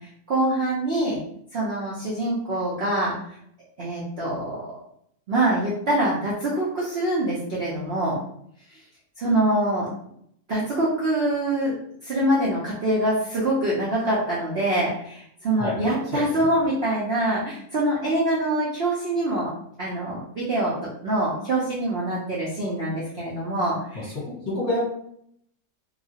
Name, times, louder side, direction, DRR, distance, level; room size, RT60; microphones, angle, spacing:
voice 1, 0.3-1.2 1.5-3.1 3.8-4.6 5.3-8.2 9.2-9.9 10.5-11.7 12.0-19.5 19.8-24.1, right 1 dB, 55° right, -7 dB, 0.7 m, -24 dB
voice 2, 15.6-16.5 24.2-24.9, left 2 dB, 30° left, -8 dB, 1.2 m, -28 dB
2.9 x 2.4 x 2.7 m, 0.69 s
omnidirectional pair, 1.8 m